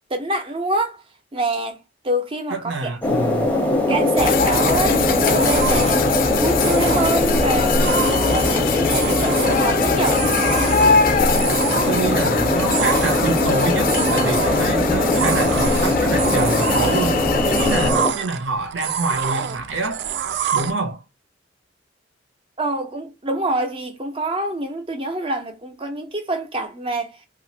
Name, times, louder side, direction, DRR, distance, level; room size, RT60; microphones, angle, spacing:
voice 1, 0.1-1.0 1.3-3.0 3.9-6.1 6.4-7.8 8.3-10.2 22.6-27.2, right 2 dB, 30° right, 0.6 m, -26 dB
voice 2, 2.5-3.5 11.8-20.0 20.5-21.0, right 3 dB, 80° right, 0.8 m, -26 dB
sound 1, 3.0-18.1, left 2 dB, 10° left, 0.7 m, -21 dB
sound 2, 4.2-17.9, left 5 dB, 50° left, 0.5 m, -23 dB
sound 3, 4.5-20.7, right 7 dB, 60° right, 0.3 m, -28 dB
2.8 x 2.5 x 2.7 m
head